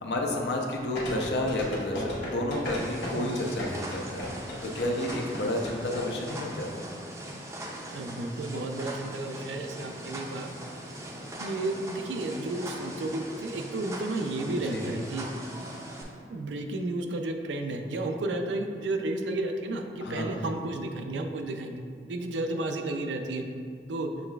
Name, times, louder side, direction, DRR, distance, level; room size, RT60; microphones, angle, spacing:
voice 1, 0.0-4.3 4.6-6.7 14.7-14.9 20.0-20.4, left 1 dB, 70° left, 1 dB, 0.5 m, -31 dB
sound 1, 0.9-6.0 6.3-6.4, left 1 dB, 85° left, 1.1 m, -35 dB
sound 2, 2.6-16.0, right 1 dB, 15° right, 0.4 m, -41 dB
voice 2, 7.9-10.5 11.4-15.3 16.3-21.8 22.1-23.5 23.9-24.1, right 2 dB, 85° right, 5 dB, 0.4 m, -32 dB
6.9 x 3.2 x 2.3 m, 2.2 s
head